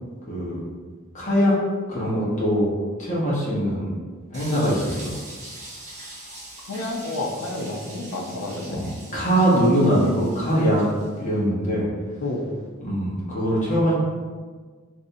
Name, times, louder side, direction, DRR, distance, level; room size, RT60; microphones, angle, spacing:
voice 1, 0.3-0.6 1.1-1.5 1.9-2.7 3.0-3.9 4.3-5.1 8.7-8.8 9.1-10.8 11.2-11.9 12.8-13.9, equal, 35° left, -7 dB, 0.9 m, -22 dB
sound 1, 4.3-11.2, right 1 dB, 35° right, 0.8 m, -42 dB
voice 2, 6.6-8.9 12.2-12.5, left 2 dB, 75° left, 1 dB, 0.5 m, -30 dB
3.2 x 2.6 x 2.7 m, 1.5 s
head